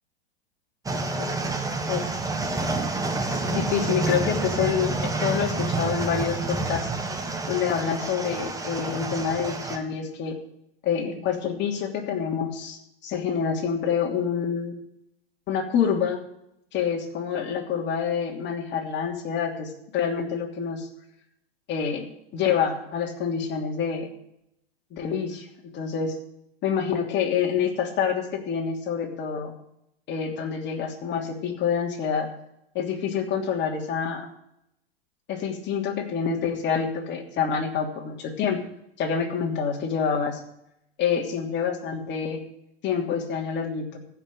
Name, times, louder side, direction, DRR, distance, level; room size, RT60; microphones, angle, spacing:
sound 1, 0.8-9.8, right 3 dB, 10° right, 1.6 m, -28 dB
voice 1, 1.9-2.2 2.4-2.6 3.1-6.9 7.5-10.4 10.8-14.8 15.5-16.2 16.7-20.9 21.7-24.1 24.9-26.2 26.6-29.5 30.1-32.3 32.7-34.3 35.3-38.6 39.0-40.4 41.0-42.4 42.8-44.0, left 7 dB, 35° left, 1 dB, 3.0 m, -27 dB
15.0 x 6.0 x 8.7 m, 0.79 s
hypercardioid pair, 115°, 30 cm